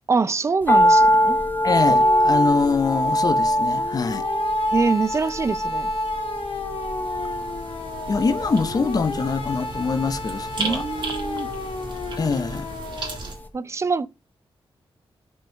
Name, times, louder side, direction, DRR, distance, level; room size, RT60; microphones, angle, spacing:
voice 1, 0.1-1.4 4.7-5.9 10.6-11.5 13.5-14.1, right 4 dB, 30° right, 0.4 m, -24 dB
sound 1, 0.7-13.0 13.2-13.3, equal, 20° left, 1.1 m, -23 dB
voice 2, 1.6-4.2 8.1-10.9 12.2-12.7, left 4 dB, 40° left, 0.8 m, -24 dB
sound 2, 1.7-13.2, left 4 dB, 70° left, 1.7 m, -34 dB
sound 3, 5.8-13.4, right 3 dB, 50° right, 1.6 m, -36 dB
5.5 x 5.3 x 6.3 m
wide cardioid pair, 155°, 10 cm